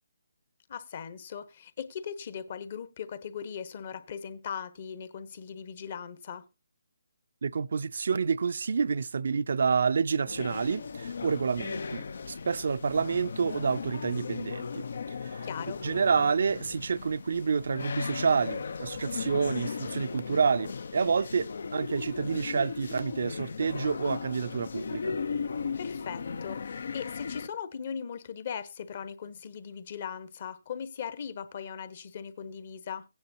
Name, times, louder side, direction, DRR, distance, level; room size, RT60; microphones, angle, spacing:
voice 1, 0.7-6.5 15.4-15.8 25.8-33.1, left 7 dB, 45° left, 1.1 m, -39 dB
voice 2, 7.4-14.9 15.2-15.5 15.8-25.2, right 5 dB, 60° right, 0.5 m, -28 dB
sound 1, 10.3-27.5, left 5 dB, 65° left, 0.6 m, -37 dB
16.5 x 9.5 x 2.7 m
hypercardioid pair, 155°, 0 cm